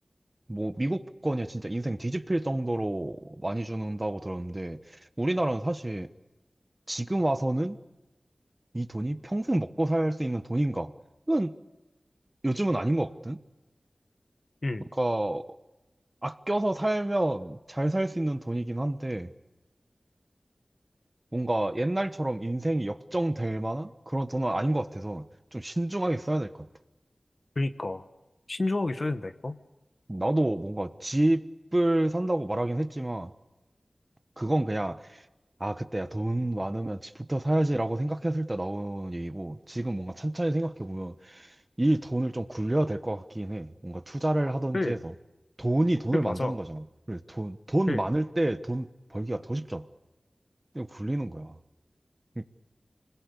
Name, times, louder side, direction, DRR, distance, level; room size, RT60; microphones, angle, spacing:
voice 1, 0.5-6.1 6.9-7.8 8.7-10.9 11.3-11.5 12.4-13.4 15.0-15.4 16.2-19.3 21.3-25.2 25.5-26.7 30.1-31.4 31.7-33.3 34.4-35.2 35.6-45.1 45.6-49.8 50.7-51.5 52.4-52.5, right 1 dB, 25° right, 1.2 m, -29 dB
voice 2, 27.5-28.0 28.5-29.6 44.7-45.0 46.1-46.6 47.9-48.0, left 2 dB, 55° left, 1.3 m, -30 dB
25.5 x 21.0 x 8.4 m
wide cardioid pair, 55°, 0 cm